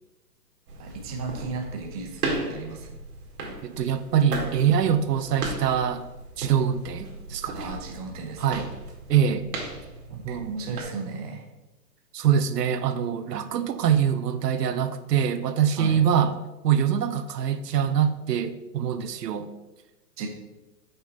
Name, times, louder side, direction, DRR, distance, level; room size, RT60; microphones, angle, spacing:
sound 1, 0.7-10.8, right 2 dB, 65° right, 1.8 m, -36 dB
voice 1, 0.8-2.9 7.5-8.6 10.1-11.5 15.8-16.0 20.2-20.3, right 4 dB, 25° right, 2 dB, 0.7 m, -35 dB
voice 2, 3.6-6.0 6.4-7.7 8.4-8.7 9.1-9.5 10.2-10.5 12.1-16.3 16.6-19.5, right 8 dB, 90° right, 11 dB, 0.7 m, -24 dB
5.8 x 5.1 x 3.9 m, 1.0 s
hypercardioid pair, 155°, 47 cm